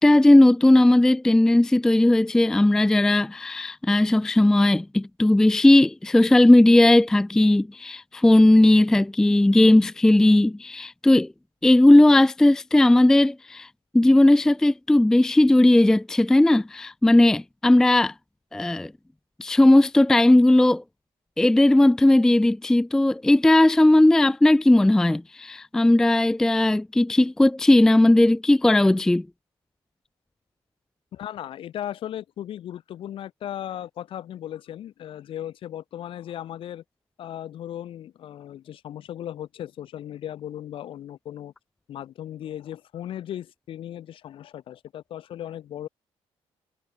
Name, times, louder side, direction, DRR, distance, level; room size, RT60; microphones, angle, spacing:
voice 1, 0.0-11.3 11.6-13.7 13.9-18.1 18.5-18.9 19.4-20.8 21.4-29.3, left 1 dB, 5° left, 0.4 m, -17 dB
voice 2, 31.1-36.8 37.2-41.5 41.9-45.9, left 11 dB, 55° left, 6.9 m, -36 dB
cardioid pair, 180°, 11 cm